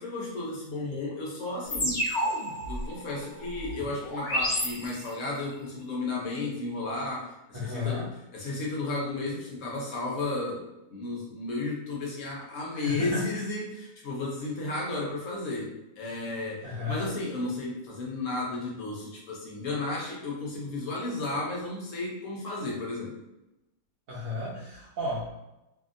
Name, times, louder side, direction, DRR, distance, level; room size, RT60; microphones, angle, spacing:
voice 1, 0.0-2.1 2.7-8.0 8.3-23.1, left 2 dB, 65° left, -3 dB, 1.0 m, -33 dB
sound 1, 1.7-5.4, equal, 45° left, 0.7 m, -31 dB
voice 2, 7.5-8.1 12.7-13.3 16.6-17.1 24.1-25.3, left 3 dB, 70° right, -8 dB, 1.1 m, -33 dB
2.7 x 2.6 x 2.4 m, 0.94 s
omnidirectional pair, 1.6 m